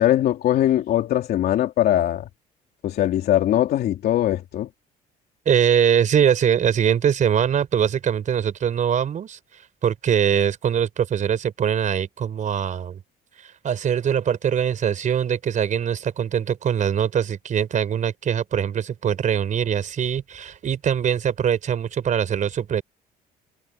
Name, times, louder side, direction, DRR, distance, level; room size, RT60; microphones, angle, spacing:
voice 1, 0.0-2.3 2.8-4.7, left 12 dB, 65° left, 3.1 m, -21 dB
voice 2, 5.4-9.4 9.8-13.0 13.4-22.8, right 8 dB, 50° right, 4.6 m, -22 dB
cardioid pair, 110°, 17 cm